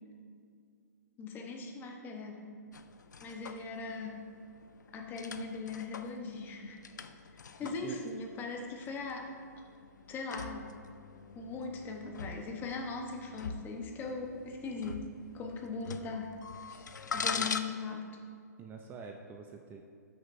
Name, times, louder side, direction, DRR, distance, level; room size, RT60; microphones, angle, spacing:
voice 1, 1.2-2.4 3.2-4.2 4.9-6.8 7.6-9.3 10.1-10.7 11.3-15.0 15.3-16.3 16.6-16.8 17.1-18.1, left 4 dB, 20° left, 2 dB, 1.0 m, -39 dB
sound 1, 2.7-17.6, left 5 dB, 85° left, 0.5 m, -43 dB
voice 2, 7.6-8.0 17.4-17.5 18.6-19.8, right 6 dB, 20° right, 3 dB, 0.5 m, -46 dB
13.0 x 6.2 x 2.6 m, 2.2 s
hypercardioid pair, 135°, 9 cm